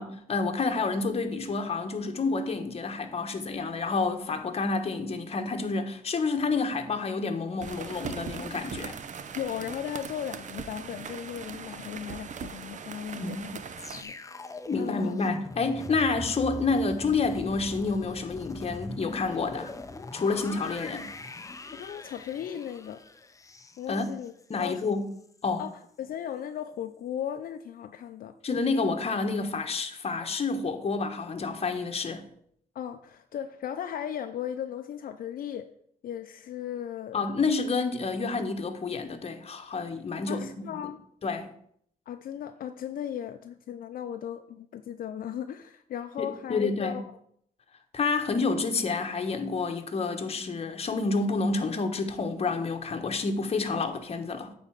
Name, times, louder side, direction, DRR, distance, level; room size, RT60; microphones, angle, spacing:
voice 1, 0.0-9.0 13.1-13.4 14.7-19.7 20.1-21.1 23.9-24.1 24.5-25.1 25.4-25.6 28.4-32.2 37.1-40.5 41.2-41.5 46.2-47.0 47.9-54.5, left 4 dB, 45° left, 1.2 m, -29 dB
sound 1, 7.6-14.0, right 6 dB, 55° right, 0.7 m, -40 dB
voice 2, 9.4-13.6 13.9-15.1 21.7-23.0 23.8-24.3 24.6-24.9 25.6-28.3 32.7-35.7 36.0-37.2 40.3-41.0 42.1-47.0, left 9 dB, 75° left, 0.5 m, -36 dB
sound 2, 13.8-24.9 25.2-25.4, left 3 dB, 20° left, 0.7 m, -41 dB
9.0 x 4.3 x 7.3 m
cardioid pair, 95°, 15 cm